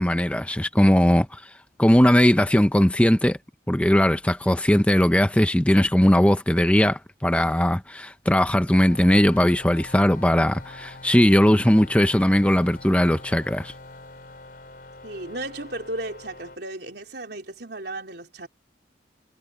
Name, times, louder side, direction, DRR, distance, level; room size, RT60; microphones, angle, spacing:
voice 1, 0.0-1.5 1.8-3.4 3.7-13.7, equal, 5° left, 0.6 m, -19 dB
sound 1, 8.9-16.6, left 2 dB, 50° left, 4.8 m, -44 dB
voice 2, 15.0-18.5, right 2 dB, 65° right, 3.7 m, -34 dB
head